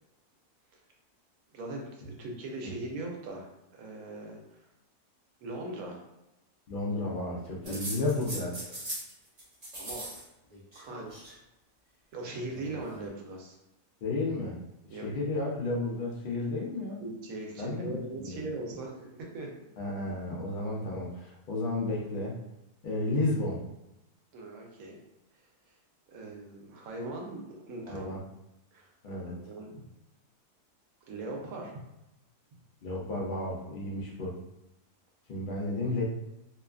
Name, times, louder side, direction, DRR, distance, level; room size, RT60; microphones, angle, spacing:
voice 1, 1.5-4.7 5.4-6.0 9.8-10.1 10.7-11.1 12.1-13.6 14.9-15.1 16.4-16.5 17.0-19.5 24.3-25.0 25.3-25.5 26.1-28.1 28.7-28.9 29.2-29.8 31.1-31.7, right 2 dB, 70° right, 0 dB, 1.0 m, -40 dB
voice 2, 6.7-8.8 14.0-14.6 14.9-17.0 17.6-18.4 19.8-22.4 22.8-23.6 27.9-28.2 29.0-29.4 32.8-34.4 35.3-36.0, left 2 dB, 75° left, -3 dB, 0.4 m, -32 dB
sound 1, 7.6-9.1 9.4-10.2 10.5-11.3 12.4-13.1, right 1 dB, 50° right, 0.4 m, -40 dB
2.8 x 2.3 x 2.3 m, 0.92 s
omnidirectional pair, 1.6 m